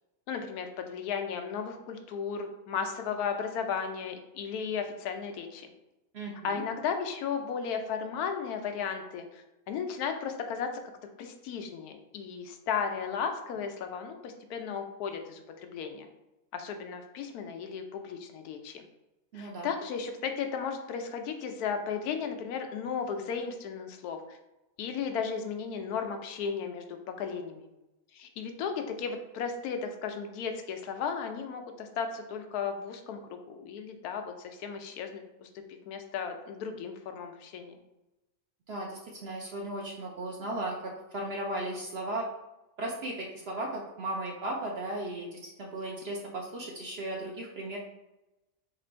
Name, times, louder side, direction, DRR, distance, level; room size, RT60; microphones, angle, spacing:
voice 1, 0.3-5.7 6.4-9.3 9.7-10.7 11.2-16.1 16.5-18.8 19.3-24.2 24.8-27.7 28.1-34.3 34.6-35.5 35.9-37.8, left 6 dB, 90° left, 6 dB, 1.1 m, -35 dB
voice 2, 6.1-6.6 19.3-19.7 38.7-42.3 42.8-47.8, right 1 dB, 60° right, 0 dB, 0.7 m, -36 dB
3.7 x 2.5 x 4.3 m, 0.96 s
omnidirectional pair, 1.6 m